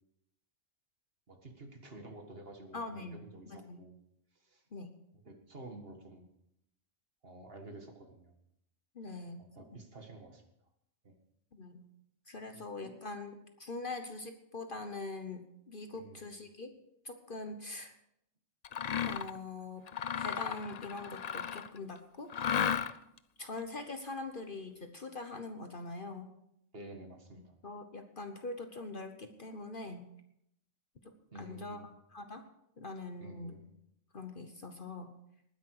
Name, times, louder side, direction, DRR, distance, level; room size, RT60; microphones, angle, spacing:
voice 1, 1.3-3.9 4.4-4.6 5.1-6.3 7.2-8.3 9.1-10.4 11.0-11.2 12.5-13.0 15.9-16.3 26.7-27.5 31.3-31.9 33.2-33.7, right 2 dB, 45° right, 4 dB, 2.0 m, -51 dB
voice 2, 2.7-3.2 3.5-3.9 4.7-4.9 8.9-9.4 11.5-11.9 12.3-16.7 17.0-17.9 19.0-19.9 20.2-22.6 23.4-26.3 27.6-30.1 31.3-31.8 32.1-32.4 32.8-33.5 34.1-35.2, left 3 dB, 45° left, 7 dB, 1.1 m, -43 dB
Mechanisms, 18.6-19.4 19.9-21.8 22.3-23.2, left 8 dB, 65° left, 0.4 m, -34 dB
19.5 x 10.0 x 4.8 m, 0.78 s
omnidirectional pair, 1.4 m